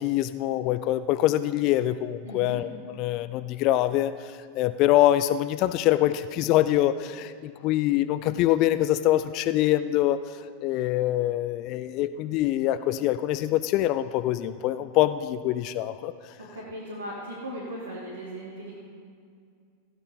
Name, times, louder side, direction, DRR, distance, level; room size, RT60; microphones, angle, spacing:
voice 1, 0.0-10.2 10.6-16.3, left 14 dB, 40° left, 13 dB, 0.4 m, -24 dB
voice 2, 2.2-2.6 16.4-18.8, right 1 dB, 75° right, -7 dB, 2.7 m, -37 dB
16.5 x 9.8 x 4.0 m, 2.2 s
figure-of-eight pair, 90°, 0 cm